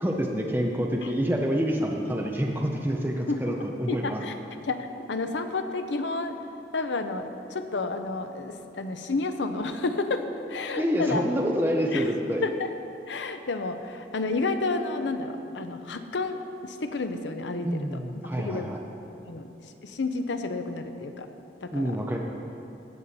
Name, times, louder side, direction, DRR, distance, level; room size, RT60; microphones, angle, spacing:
voice 1, 0.0-4.2 10.8-12.4 17.6-18.8 21.7-22.2, equal, 10° right, 0 dB, 0.6 m, -27 dB
voice 2, 3.9-4.3 4.6-6.4 6.7-10.2 10.5-11.3 11.9-12.1 12.4-12.7 13.1-17.7 18.3-18.7 19.2-19.5 19.8-21.3 21.6-21.8, left 3 dB, 90° left, 8 dB, 0.7 m, -30 dB
16.5 x 6.9 x 4.2 m, 2.8 s
head